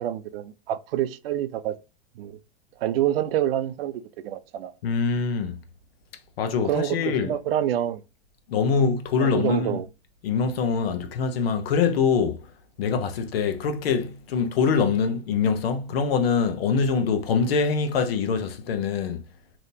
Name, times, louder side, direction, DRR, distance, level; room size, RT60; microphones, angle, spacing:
voice 1, 0.0-1.8 2.2-2.4 2.8-4.7 6.6-8.0 9.2-9.9, right 11 dB, 65° right, 0.5 m, -27 dB
voice 2, 4.8-5.6 6.4-7.3 8.5-9.8 10.2-12.4 12.8-19.2, left 5 dB, 70° left, 0.9 m, -24 dB
3.5 x 2.9 x 2.7 m
hypercardioid pair, 140°, 31 cm